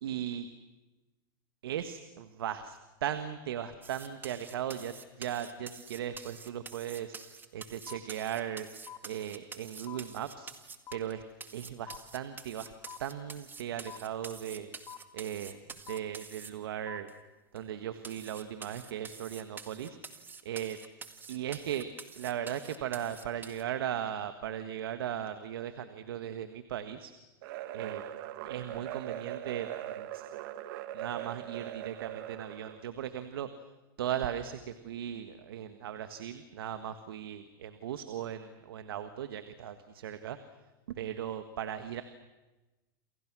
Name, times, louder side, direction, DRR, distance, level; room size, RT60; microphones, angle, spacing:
voice 1, 0.0-0.5 1.6-7.1 7.5-8.7 9.0-10.5 10.9-11.2 11.5-12.7 13.0-14.7 15.1-17.1 17.5-20.2 20.4-20.8 21.3-21.9 22.2-27.1 27.7-28.0 28.4-30.3 30.9-33.5 34.0-40.4 40.9-42.0, right 10 dB, 80° right, 10 dB, 1.6 m, -37 dB
sound 1, 3.8-11.1 11.4-16.5 17.1-17.2 17.6-17.7 18.0-23.6, right 5 dB, 15° right, 2.1 m, -47 dB
sound 2, 7.9-8.0 8.9-9.0 9.9-10.0 10.9-11.0 11.9-12.0 12.9-13.0 13.9-14.0 14.9-15.0 15.9-16.0 16.9-17.0, left 10 dB, 30° left, 2.8 m, -44 dB
sound 3, 27.4-32.9, right 12 dB, 65° right, 1.6 m, -41 dB
28.5 x 27.0 x 6.2 m, 1.1 s
hypercardioid pair, 125°, 12 cm